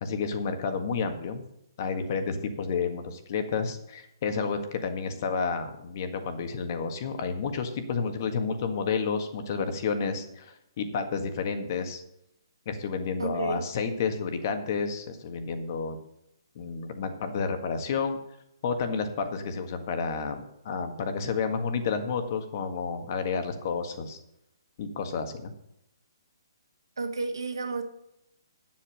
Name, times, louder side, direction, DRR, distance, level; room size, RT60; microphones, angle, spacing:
voice 1, 0.0-1.4 1.8-12.0 12.7-16.0 16.6-18.2 18.6-24.2 24.8-25.5, left 5 dB, 45° left, 7 dB, 1.7 m, -30 dB
voice 2, 13.2-13.6 27.0-27.8, right 3 dB, 85° right, 5 dB, 2.0 m, -31 dB
9.6 x 7.6 x 6.4 m, 0.81 s
hypercardioid pair, 145°, 2 cm